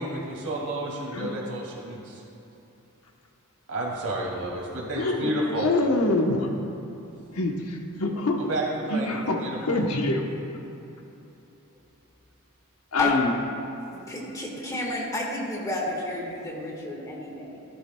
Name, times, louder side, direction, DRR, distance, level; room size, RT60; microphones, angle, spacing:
voice 1, 0.0-2.2 3.7-5.7 8.5-8.6 8.9-9.8, right 1 dB, 85° right, -3 dB, 2.4 m, -31 dB
voice 2, 4.9-6.5 7.3-8.5 8.9-10.3 12.9-13.3, left 2 dB, 75° left, 2 dB, 1.1 m, -25 dB
voice 3, 13.9-17.6, left 1 dB, 15° left, -2 dB, 1.6 m, -31 dB
14.0 x 12.0 x 2.3 m, 2.9 s
head